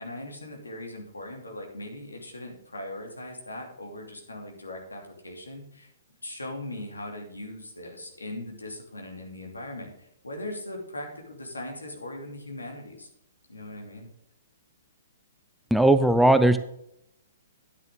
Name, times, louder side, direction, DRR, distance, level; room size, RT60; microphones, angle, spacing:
voice 1, 0.0-5.9 6.2-13.1 13.5-14.1, left 1 dB, 90° left, 1 dB, 2.7 m, -39 dB
voice 2, 15.7-16.6, right 1 dB, ahead, 10 dB, 0.6 m, -18 dB
9.7 x 9.4 x 3.8 m, 0.77 s
figure-of-eight pair, 120°, 0 cm